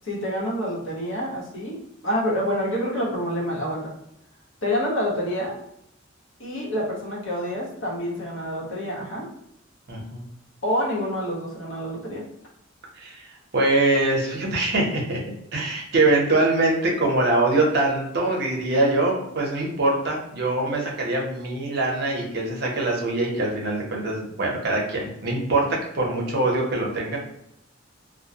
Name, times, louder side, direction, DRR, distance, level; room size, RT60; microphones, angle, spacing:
voice 1, 0.0-1.8 2.0-3.9 4.6-5.6 6.4-9.3 10.6-12.2, equal, 75° left, -5 dB, 0.9 m, -27 dB
voice 2, 9.9-10.2 13.0-15.2 15.5-25.6 25.9-27.2, right 2 dB, 55° right, -1 dB, 0.7 m, -23 dB
2.2 x 2.1 x 2.7 m, 0.76 s
head